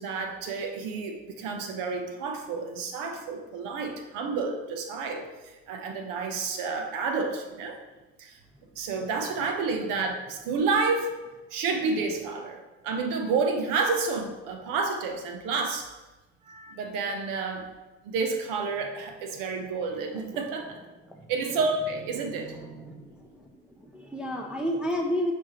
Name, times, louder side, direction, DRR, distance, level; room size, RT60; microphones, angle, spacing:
voice 1, 0.0-7.8 8.2-8.4 8.8-11.1 11.5-15.9 16.5-17.7 18.0-20.8 21.3-22.5, right 4 dB, 70° right, 4 dB, 1.0 m, -30 dB
voice 2, 22.3-23.5 23.8-25.3, equal, 5° right, -1 dB, 0.6 m, -32 dB
6.3 x 4.9 x 3.1 m, 1.1 s
supercardioid pair, 100°, 34 cm